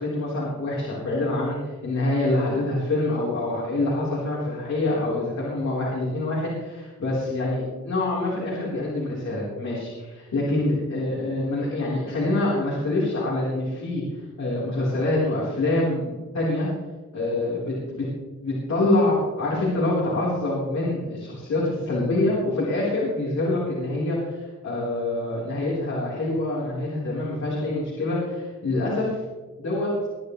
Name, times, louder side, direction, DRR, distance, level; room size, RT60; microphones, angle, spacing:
voice 1, 0.0-16.7 17.1-18.1 18.4-29.2 29.6-29.9, left 2 dB, 65° left, -7 dB, 4.2 m, -26 dB
22.5 x 10.0 x 3.3 m, 1.3 s
wide cardioid pair, 140°, 29 cm